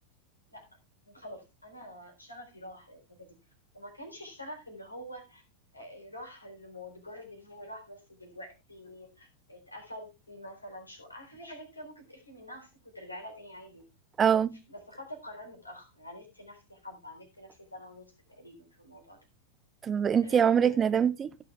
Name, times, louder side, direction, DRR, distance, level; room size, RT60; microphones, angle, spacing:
voice 1, 1.1-3.4 3.7-5.4 5.7-13.8 14.7-19.2 20.2-20.9, left 1 dB, 85° left, 4.0 m, -47 dB
voice 2, 14.2-14.6 19.8-21.4, right 8 dB, 20° right, 0.8 m, -24 dB
16.0 x 6.7 x 3.3 m
figure-of-eight pair, 90°, 0 cm